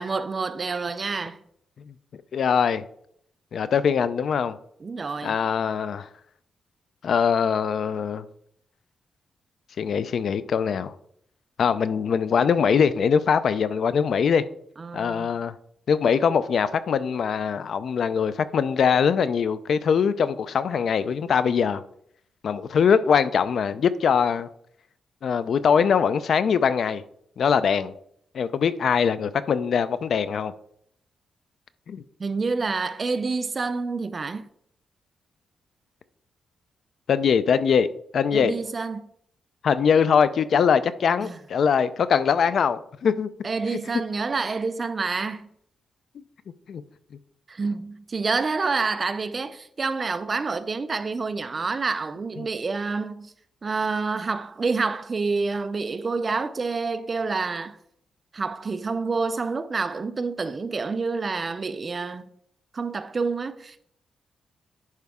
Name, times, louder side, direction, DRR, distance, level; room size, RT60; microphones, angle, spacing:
voice 1, 0.0-1.4 4.8-5.4 14.8-15.3 32.2-34.5 38.3-39.1 41.2-41.4 43.4-45.5 47.5-53.3 53.6-57.8 58.3-62.3 62.7-63.8, right 4 dB, 30° right, 0.4 m, -28 dB
voice 2, 2.3-2.8 3.5-4.6 5.2-6.1 7.0-8.2 9.8-10.9 11.6-14.4 14.9-15.5 15.9-21.8 22.4-24.5 25.2-27.0 27.4-27.9 28.3-30.5 31.9-32.0 37.1-38.5 39.6-43.3 46.7-46.8 52.4-52.5, left 6 dB, 55° left, 0.4 m, -22 dB
11.0 x 4.7 x 3.6 m
wide cardioid pair, 155°, 0 cm